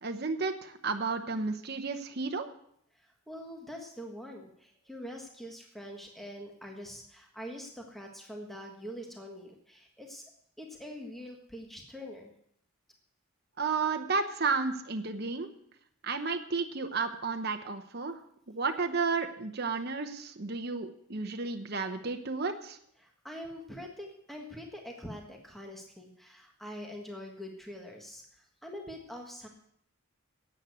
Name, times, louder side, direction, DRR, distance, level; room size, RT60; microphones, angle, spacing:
voice 1, 0.0-2.5 13.6-15.5 16.0-18.2 18.5-22.8, right 4 dB, 45° right, 5 dB, 0.9 m, -32 dB
voice 2, 2.9-10.2 10.6-12.3 23.0-29.5, equal, ahead, 1 dB, 1.5 m, -44 dB
11.5 x 8.2 x 8.2 m, 0.71 s
head